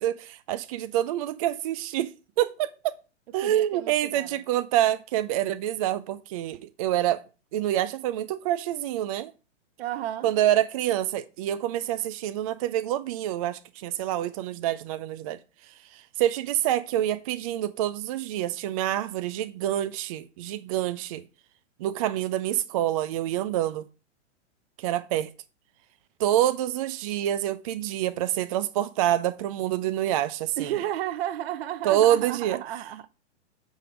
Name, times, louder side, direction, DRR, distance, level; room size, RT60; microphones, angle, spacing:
voice 1, 0.0-2.1 2.4-2.9 3.3-7.2 7.5-9.3 10.2-15.4 15.9-21.2 21.8-23.9 24.8-25.3 26.2-30.7 31.8-32.8, right 12 dB, 30° right, 0.4 m, -27 dB
voice 2, 3.4-4.4 9.8-10.3 30.6-33.1, right 12 dB, 55° right, 0.7 m, -33 dB
9.0 x 3.5 x 6.2 m
hypercardioid pair, 140°, 36 cm